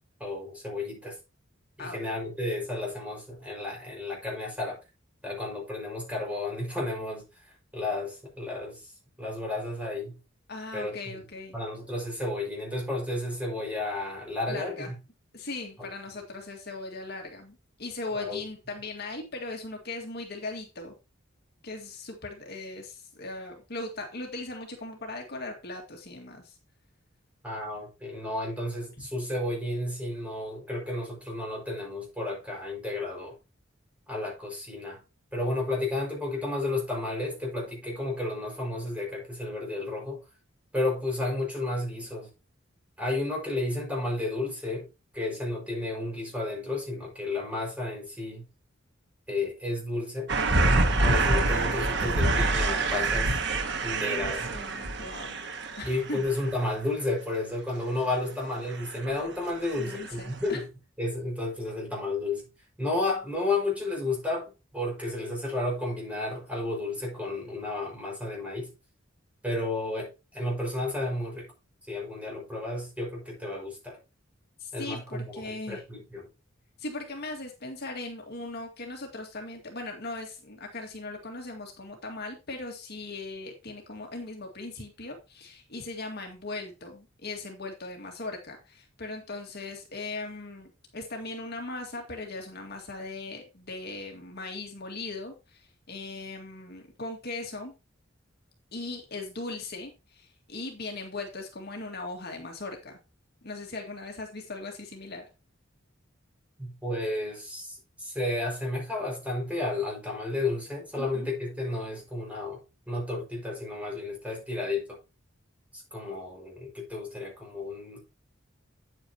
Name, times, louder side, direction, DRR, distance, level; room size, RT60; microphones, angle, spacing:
voice 1, 0.2-1.2 1.8-4.8 5.2-7.2 7.7-8.9 9.2-10.2 10.7-11.2 11.5-15.0 15.8-15.9 18.1-18.4 27.4-33.4 34.1-35.0 35.3-40.2 40.7-42.3 43.0-44.9 45.1-48.5 49.3-50.3 51.0-53.4 53.8-54.5 55.8-60.7 61.0-62.4 62.8-68.7 69.4-71.5 71.9-74.0 74.7-76.3 106.6-112.6 112.9-115.0 115.7-118.0, left 2 dB, 5° right, 5.4 m, -32 dB
voice 2, 10.5-11.6 14.5-14.9 15.3-20.9 21.6-26.6 29.0-29.1 53.8-55.4 55.8-56.3 59.8-60.6 74.6-75.8 76.8-97.7 98.7-103.0 103.4-105.3 111.0-111.3, left 2 dB, 55° left, 2.0 m, -39 dB
sound 1, 50.3-56.6 58.7-59.2 59.7-60.2 60.5-60.6, right 2 dB, 60° right, 1.4 m, -26 dB
9.1 x 8.8 x 2.9 m
head